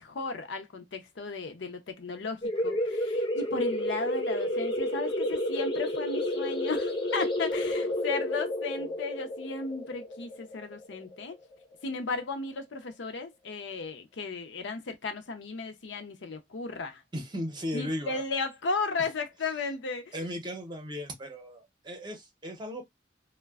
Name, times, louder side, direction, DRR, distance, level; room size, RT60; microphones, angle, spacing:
voice 1, 0.0-11.4 11.8-17.0 17.7-20.3, left 4 dB, 80° left, 0.6 m, -35 dB
sound 1, 2.4-11.7, left 1 dB, 25° left, 0.6 m, -31 dB
voice 2, 17.1-18.2 20.1-22.8, equal, 25° right, 0.6 m, -36 dB
2.5 x 2.1 x 2.3 m
head